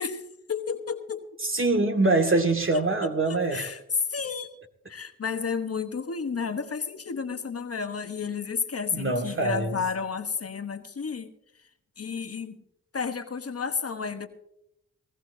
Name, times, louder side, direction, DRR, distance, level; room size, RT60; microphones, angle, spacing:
voice 1, 0.0-1.3 2.7-3.8 4.1-4.5 4.9-11.3 12.0-12.6 12.9-14.3, left 5 dB, 45° left, 8 dB, 1.2 m, -32 dB
voice 2, 1.4-3.7 8.9-9.8, right 2 dB, 40° right, 4 dB, 2.1 m, -24 dB
20.0 x 15.0 x 2.7 m, 0.79 s
cardioid pair, 50°, 32 cm